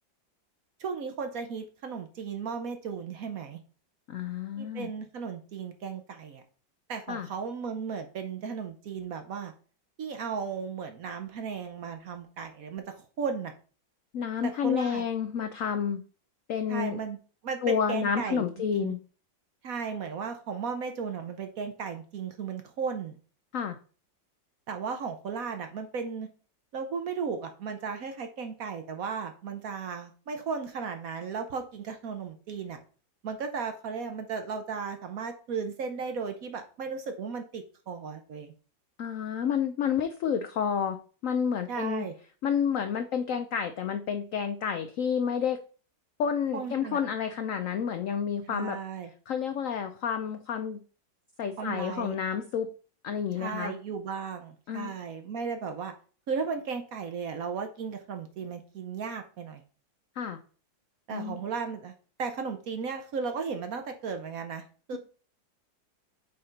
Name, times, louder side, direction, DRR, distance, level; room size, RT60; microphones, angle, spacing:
voice 1, 0.8-3.6 4.6-6.4 6.9-9.5 10.0-13.5 14.4-15.0 16.7-17.2 17.4-18.4 18.7-18.9 19.6-23.2 24.7-26.3 26.7-32.8 33.2-38.5 41.7-42.1 46.5-47.0 48.5-49.1 51.6-52.2 53.4-55.9 56.3-59.6 61.1-61.9 62.2-65.0, right 5 dB, 60° right, 6 dB, 1.0 m, -35 dB
voice 2, 4.1-4.9 7.1-7.3 14.1-16.0 16.5-17.0 17.6-19.0 23.5-23.8 39.0-42.1 42.4-45.6 46.2-48.8 49.3-50.8 51.4-52.7 53.0-53.7 54.7-54.9 60.2-60.4 61.1-61.4, left 7 dB, 90° left, 8 dB, 0.7 m, -30 dB
5.5 x 4.2 x 5.1 m, 0.39 s
omnidirectional pair, 2.0 m